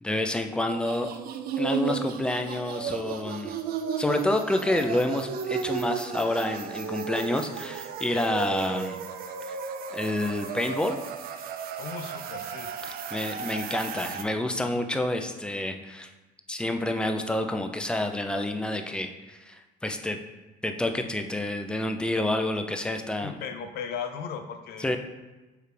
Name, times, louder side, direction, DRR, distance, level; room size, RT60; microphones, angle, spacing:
voice 1, 0.0-1.1 1.6-3.6 4.0-9.0 9.5-9.6 9.9-11.0 13.1-16.1 16.5-20.2 20.6-23.3 24.8-25.0, left 1 dB, 5° left, 5 dB, 0.3 m, -28 dB
sound 1, 0.7-14.2, right 7 dB, 60° right, 0.4 m, -34 dB
voice 2, 11.8-12.7 23.2-25.0, left 6 dB, 70° left, 7 dB, 0.5 m, -36 dB
4.7 x 3.3 x 3.2 m, 1.1 s
cardioid pair, 110°, 17 cm